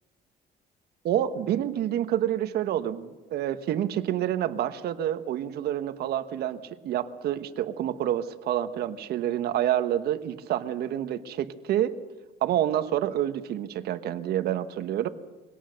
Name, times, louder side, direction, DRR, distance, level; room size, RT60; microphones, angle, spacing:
voice 1, 1.0-11.9 12.4-15.1, right 11 dB, 70° right, 10 dB, 1.3 m, -28 dB
23.5 x 17.5 x 6.5 m, 1.2 s
cardioid pair, 110°, 17 cm